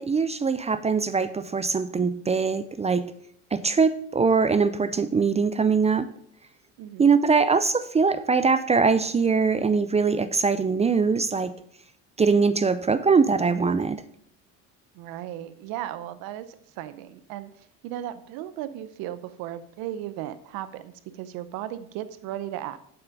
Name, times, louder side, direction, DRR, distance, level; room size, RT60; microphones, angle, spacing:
voice 1, 0.0-3.1 3.5-6.1 7.0-11.6 12.2-14.0, right 5 dB, 20° right, 13 dB, 0.4 m, -22 dB
voice 2, 6.8-7.1 14.9-16.5 16.8-22.8, right 12 dB, 80° right, 13 dB, 0.8 m, -36 dB
7.8 x 5.7 x 5.3 m, 0.65 s
supercardioid pair, 100°, 36 cm